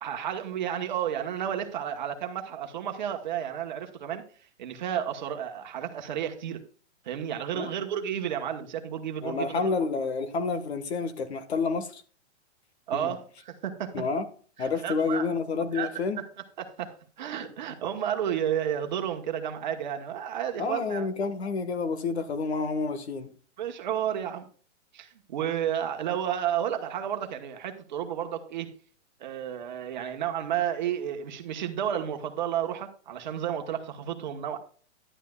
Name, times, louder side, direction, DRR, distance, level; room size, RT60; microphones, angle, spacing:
voice 1, 0.0-4.2 4.6-6.6 7.0-9.6 12.9-14.0 14.6-15.3 15.7-16.2 16.6-21.1 23.6-24.5 24.9-28.7 29.2-34.6, right 9 dB, 40° right, 5 dB, 1.2 m, -32 dB
voice 2, 9.2-12.0 12.9-13.2 13.9-14.3 14.6-16.2 20.6-23.3, left 4 dB, 65° left, 10 dB, 1.6 m, -29 dB
11.0 x 9.9 x 2.3 m, 0.42 s
hypercardioid pair, 175°, 35 cm